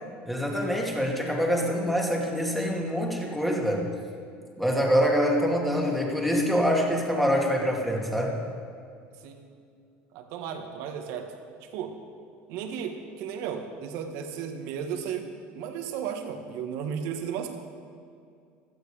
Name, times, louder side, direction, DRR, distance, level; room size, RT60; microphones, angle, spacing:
voice 1, 0.3-3.9 4.6-8.4, equal, ahead, -1 dB, 2.6 m, -25 dB
voice 2, 10.1-11.3 11.7-11.9 12.5-17.5, right 7 dB, 70° right, 5 dB, 1.7 m, -34 dB
16.0 x 12.5 x 5.1 m, 2.3 s
supercardioid pair, 120°, 5 cm